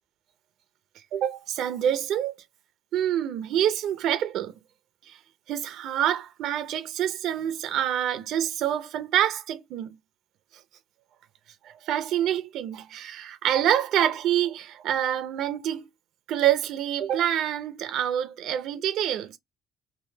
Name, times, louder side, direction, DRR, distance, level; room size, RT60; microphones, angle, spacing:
voice 1, 1.1-2.3 2.9-4.5 5.1-5.2 5.5-9.9 11.6-15.9 16.3-19.4, right 10 dB, 70° right, 0.6 m, -26 dB
3.7 x 2.6 x 2.7 m
supercardioid pair, 70°, 0 cm